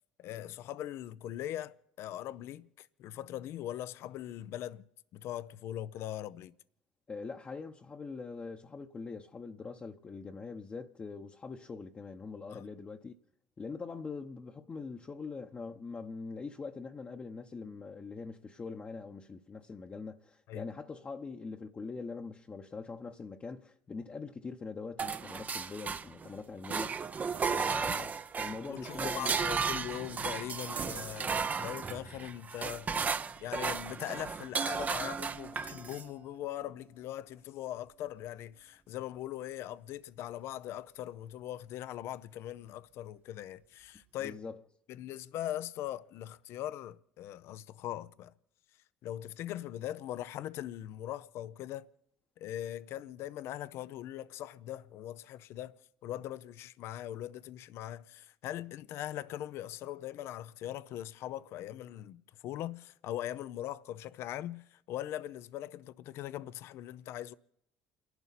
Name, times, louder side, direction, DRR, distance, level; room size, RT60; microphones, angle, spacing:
voice 1, 0.2-4.8 5.1-6.5 12.5-12.7 20.5-20.7 28.7-33.1 33.4-44.4 44.9-48.3 49.0-51.9 52.4-67.3, left 12 dB, 60° left, 0.6 m, -41 dB
voice 2, 7.1-13.1 13.6-27.1 27.5-29.3 44.2-44.6, left 4 dB, 30° left, 1.0 m, -43 dB
sound 1, 25.0-26.3 26.6-36.1, right 5 dB, 35° right, 0.7 m, -34 dB
29.5 x 11.5 x 4.2 m
hypercardioid pair, 65°, 5 cm